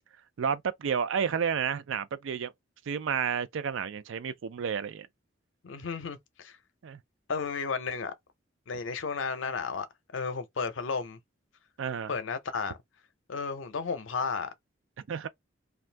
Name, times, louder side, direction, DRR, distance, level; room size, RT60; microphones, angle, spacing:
voice 1, 0.4-2.5 2.9-5.1 6.8-7.0 11.8-12.1 15.1-15.3, right 7 dB, 80° right, 0.4 m, -31 dB
voice 2, 5.6-6.6 7.3-8.1 8.7-9.9 10.1-11.2 12.1-12.8 13.3-14.5, left 5 dB, 80° left, 0.6 m, -33 dB
2.6 x 2.3 x 3.2 m
head